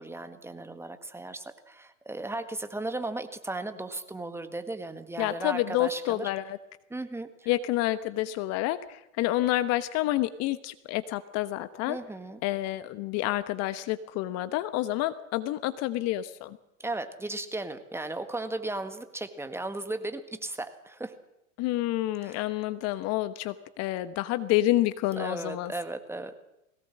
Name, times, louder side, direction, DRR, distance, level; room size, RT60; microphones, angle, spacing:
voice 1, 0.0-6.3 6.9-7.5 11.9-12.4 16.8-21.1 22.2-22.4 25.2-26.4, right 2 dB, 5° right, 9 dB, 1.7 m, -36 dB
voice 2, 5.2-6.6 7.5-12.0 12.4-16.6 21.6-25.7, left 15 dB, 40° left, 14 dB, 1.1 m, -29 dB
21.0 x 18.0 x 7.6 m, 0.87 s
hypercardioid pair, 105°, 39 cm